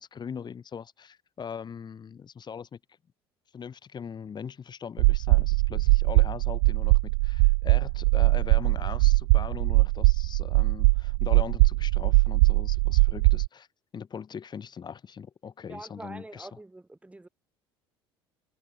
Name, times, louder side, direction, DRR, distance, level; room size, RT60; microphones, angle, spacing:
voice 1, 0.0-2.8 3.5-13.7 13.9-16.6, left 7 dB, 30° left, 4.7 m, -40 dB
sound 1, 5.0-13.5, right 27 dB, 60° right, 0.4 m, -21 dB
voice 2, 15.7-17.3, right 2 dB, 10° right, 2.5 m, -44 dB
figure-of-eight pair, 60°, 14 cm